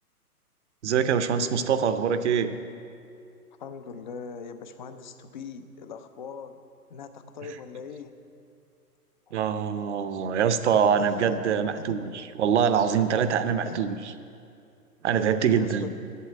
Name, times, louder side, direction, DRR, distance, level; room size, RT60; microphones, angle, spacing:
voice 1, 0.8-2.5 9.3-14.1 15.0-15.9, right 7 dB, 50° right, 11 dB, 0.7 m, -24 dB
voice 2, 3.6-6.6 6.9-8.1 9.3-9.4 11.0-11.4 11.8-12.0 12.8-13.0 13.2-13.3 13.6-13.8 15.1-15.3 15.5-15.9, left 6 dB, 30° left, 9 dB, 0.5 m, -41 dB
8.4 x 7.7 x 8.6 m, 2.5 s
hypercardioid pair, 130°, 47 cm